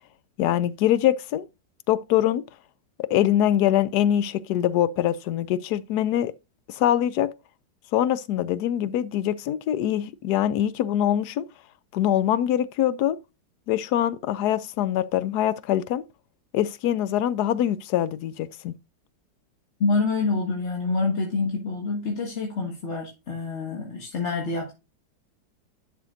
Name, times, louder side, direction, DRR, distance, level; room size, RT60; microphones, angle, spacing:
voice 1, 0.4-1.5 1.9-2.4 3.1-6.3 6.7-7.3 7.9-11.4 11.9-13.2 13.7-16.0 16.5-18.8, left 11 dB, 70° left, 1.0 m, -23 dB
voice 2, 19.8-24.7, left 3 dB, 40° left, 1.8 m, -27 dB
11.0 x 5.8 x 2.6 m
omnidirectional pair, 2.0 m